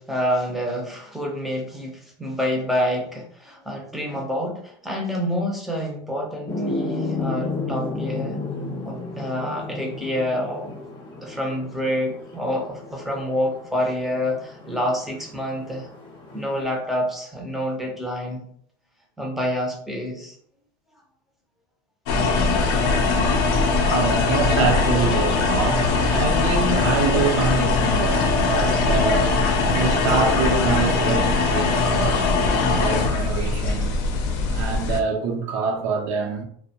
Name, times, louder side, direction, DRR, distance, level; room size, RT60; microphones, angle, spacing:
voice 1, 0.0-8.4 8.9-10.7 11.2-15.9 16.3-18.5 19.2-20.4, equal, ahead, 0.5 m, -27 dB
sound 1, 6.5-16.6, left 2 dB, 40° left, 0.7 m, -33 dB
sound 2, 22.1-35.0, left 3 dB, 80° left, 0.5 m, -21 dB
voice 2, 23.5-34.2 34.5-36.4, right 5 dB, 80° right, 0.7 m, -26 dB
2.5 x 2.0 x 2.8 m
cardioid pair, 145°, 13 cm